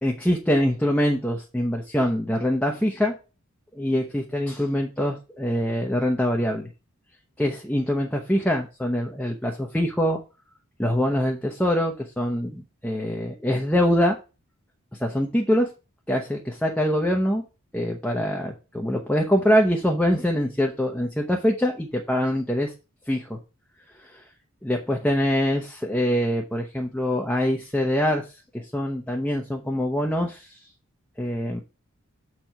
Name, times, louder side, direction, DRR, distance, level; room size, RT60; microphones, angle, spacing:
voice 1, 0.0-3.2 3.7-6.7 7.4-10.2 10.8-14.2 15.0-15.7 16.1-17.4 17.7-22.7 23.1-23.4 24.0-24.2 24.6-28.3 28.5-30.6 31.2-31.6, equal, 5° left, 0 dB, 0.8 m, -24 dB
6.9 x 4.6 x 5.0 m, 0.31 s
head